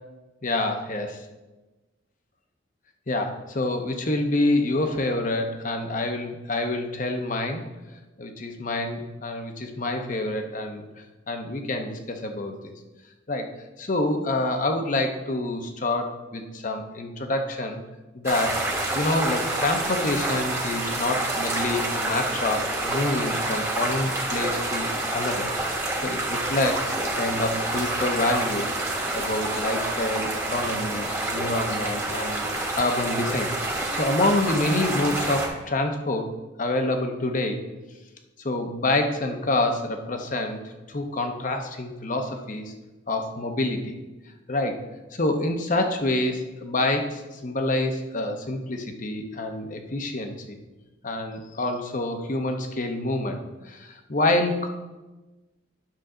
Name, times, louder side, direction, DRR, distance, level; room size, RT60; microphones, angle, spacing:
voice 1, 0.4-1.2 3.1-7.7 8.2-10.8 11.3-12.7 13.3-13.5 13.8-17.8 18.1-18.6 18.9-28.7 29.1-32.5 32.7-36.3 36.6-37.6 38.4-40.6 40.9-42.7 43.1-44.0 44.5-44.8 45.1-50.6 51.0-54.7, left 2 dB, 40° left, 5 dB, 0.9 m, -27 dB
sound 1, 18.2-35.5, right 2 dB, 15° right, 1.4 m, -28 dB
10.5 x 6.4 x 3.8 m, 1.1 s
head